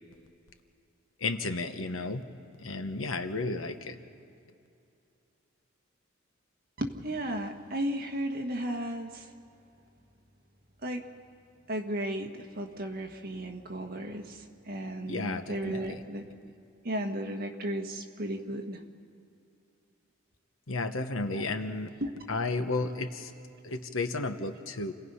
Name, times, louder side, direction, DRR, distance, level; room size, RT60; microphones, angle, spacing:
voice 1, 1.2-2.2 2.6-3.9 15.1-15.8 20.7-21.9 22.3-23.3 23.6-24.9, left 3 dB, 75° left, 8 dB, 1.1 m, -32 dB
voice 2, 6.8-9.3 10.8-11.0 11.7-16.2 16.8-18.8 21.3-22.2, right 1 dB, 50° right, 4 dB, 1.6 m, -35 dB
29.0 x 17.0 x 5.6 m, 2.6 s
head